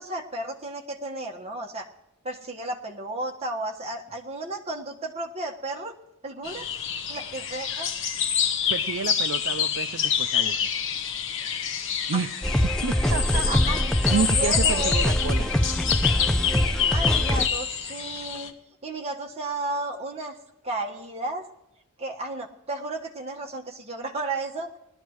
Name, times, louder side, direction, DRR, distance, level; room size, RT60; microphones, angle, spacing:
voice 1, 0.0-1.9 2.2-5.9 6.2-6.7 7.1-7.9 12.1-12.2 13.5-15.1 16.9-18.5 18.8-20.4 20.6-21.4 22.0-24.7, right 2 dB, 30° right, 0 dB, 1.5 m, -33 dB
sound 1, 6.4-18.5, left 8 dB, 60° left, 1.2 m, -27 dB
voice 2, 8.7-10.7 12.1-12.3 12.6-15.5, right 5 dB, 65° right, 9 dB, 0.5 m, -30 dB
sound 2, 12.4-17.5, equal, 5° left, 0.5 m, -24 dB
20.0 x 12.5 x 3.1 m, 0.86 s
head